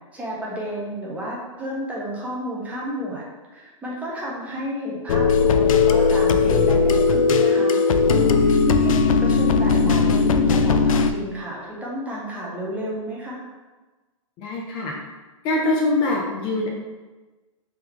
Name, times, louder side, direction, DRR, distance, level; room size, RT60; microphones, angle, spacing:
voice 1, 0.1-3.2 3.5-7.8 8.2-13.4, equal, 10° right, -4 dB, 0.8 m, -31 dB
sound 1, 5.1-11.1, left 5 dB, 85° left, 0.4 m, -18 dB
voice 2, 14.4-14.9 15.4-16.7, left 2 dB, 30° left, -2 dB, 0.6 m, -23 dB
3.6 x 2.9 x 3.5 m, 1.2 s
hypercardioid pair, 140°, 17 cm